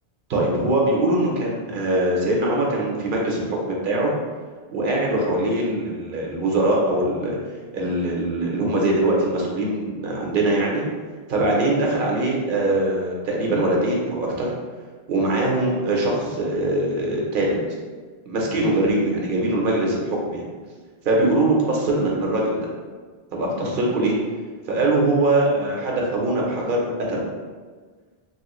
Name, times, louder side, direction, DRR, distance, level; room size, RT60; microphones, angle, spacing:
voice 1, 0.3-4.1 4.7-7.4 7.7-10.8 11.3-14.5 15.1-17.6 18.3-20.5 21.0-22.7 23.3-24.1 24.7-27.3, right 1 dB, 60° right, -2 dB, 0.9 m, -22 dB
3.1 x 2.8 x 3.0 m, 1.5 s
omnidirectional pair, 1.1 m